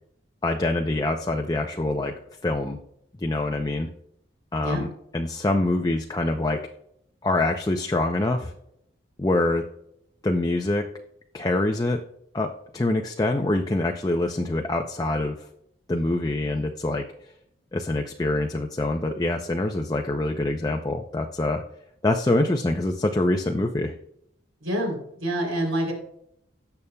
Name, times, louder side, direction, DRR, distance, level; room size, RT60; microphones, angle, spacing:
voice 1, 0.4-2.1 2.4-2.8 3.2-3.9 4.5-4.9 5.1-6.6 7.2-8.5 9.2-9.6 10.2-10.9 11.3-12.0 12.3-15.4 15.9-17.0 17.7-21.6 22.0-23.9, left 2 dB, 20° left, 3 dB, 0.5 m, -25 dB
voice 2, 24.6-25.9, right 1 dB, 85° right, 0 dB, 3.2 m, -27 dB
17.5 x 7.0 x 2.2 m, 0.75 s
head